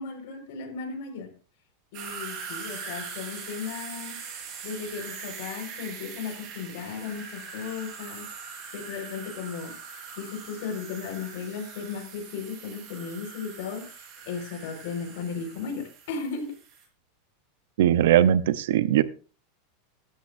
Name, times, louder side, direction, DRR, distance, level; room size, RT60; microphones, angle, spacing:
voice 1, 0.0-1.3 1.9-4.2 4.6-9.7 10.1-16.5, left 5 dB, 65° left, 4 dB, 5.0 m, -36 dB
sound 1, 1.9-16.9, right 5 dB, 40° right, 4.7 m, -42 dB
voice 2, 17.8-19.0, right 11 dB, 75° right, 15 dB, 0.8 m, -20 dB
16.5 x 12.5 x 2.7 m, 0.36 s
supercardioid pair, 150°, 0 cm